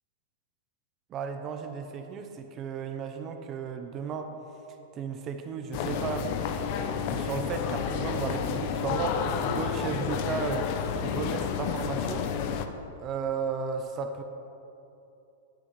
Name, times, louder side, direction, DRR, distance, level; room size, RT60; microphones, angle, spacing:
voice 1, 1.1-4.3 4.9-6.3 7.1-10.7 11.0-12.3 13.0-14.2, right 6 dB, 30° right, 6 dB, 0.8 m, -34 dB
sound 1, 5.7-12.7, left 7 dB, 50° left, 0.7 m, -30 dB
18.0 x 8.5 x 3.2 m, 2.8 s
hypercardioid pair, 140°, 0 cm